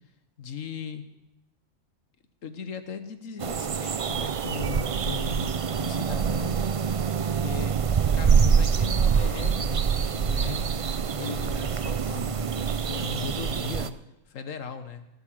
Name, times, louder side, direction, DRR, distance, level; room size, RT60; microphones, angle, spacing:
voice 1, 0.4-1.0 2.4-5.5 5.8-6.6 7.2-7.8 8.1-10.7 11.2-14.0 14.3-15.1, left 6 dB, 85° left, 10 dB, 1.6 m, -38 dB
sound 1, 3.4-13.9, right 6 dB, 55° right, 0.3 m, -25 dB
17.5 x 8.4 x 7.7 m, 0.91 s
omnidirectional pair, 1.3 m